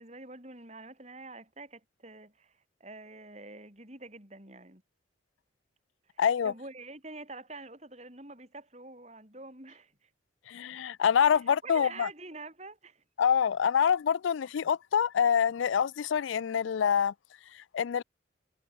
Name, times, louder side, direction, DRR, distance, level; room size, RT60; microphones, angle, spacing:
voice 1, 0.0-4.8 6.1-10.1 11.3-13.0, right 3 dB, 35° right, 6.8 m, -47 dB
voice 2, 6.2-6.5 10.5-12.1 13.2-17.1 17.7-18.0, left 7 dB, 85° left, 0.4 m, -26 dB
head